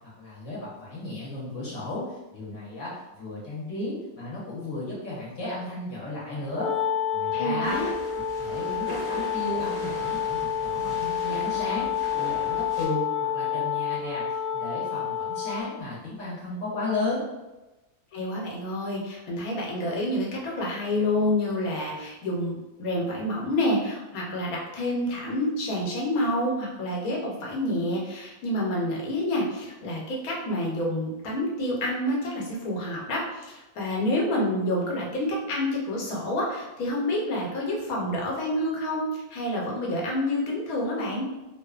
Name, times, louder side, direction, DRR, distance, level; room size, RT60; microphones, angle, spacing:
voice 1, 0.2-6.7 7.1-7.8 8.1-11.9 12.2-14.2 14.5-17.2, left 2 dB, 65° left, -6 dB, 1.0 m, -34 dB
Wind instrument woodwind instrument, 6.5-15.7, left 8 dB, 40° left, 1.0 m, -29 dB
voice 2, 7.3-7.9 18.1-41.3, left 1 dB, 85° left, -2 dB, 1.2 m, -28 dB
sound 1, 7.6-12.9, equal, 40° right, 0.4 m, -41 dB
2.8 x 2.0 x 2.3 m, 1.1 s
omnidirectional pair, 1.5 m